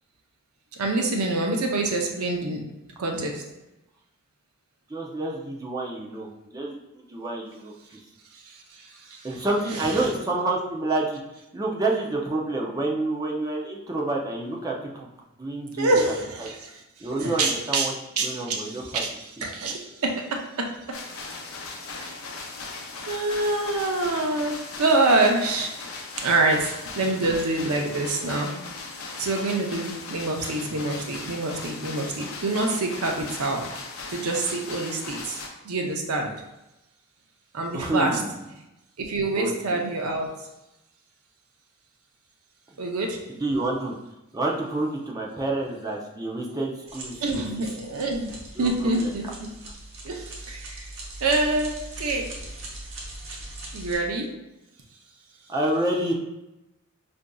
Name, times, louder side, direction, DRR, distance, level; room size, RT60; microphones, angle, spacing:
voice 1, 0.8-2.6 3.0-3.4 15.8-16.7 17.1-17.9 18.2-18.7 19.0-19.1 19.4-20.2 20.6-20.7 23.1-25.7 26.2-26.7 26.9-28.5 29.2-33.6 34.1-35.4 35.6-36.3 37.5-38.1 39.0-40.3 42.8-43.2 47.2-49.5 50.0-50.8 51.2-52.3 53.7-54.3, right 2 dB, 85° right, 2 dB, 0.6 m, -26 dB
voice 2, 4.9-7.7 9.2-11.2 11.5-15.1 15.4-16.5 17.0-17.9 18.2-19.0 37.7-38.4 39.4-39.8 43.3-43.9 44.3-47.6 48.6-49.1 55.5-56.1, right 2 dB, 15° right, -2 dB, 0.5 m, -28 dB
sound 1, 20.9-35.5, left 3 dB, 75° left, 0.5 m, -38 dB
sound 2, 46.9-54.0, right 2 dB, 60° right, 0.9 m, -40 dB
4.9 x 2.6 x 2.3 m, 0.94 s
head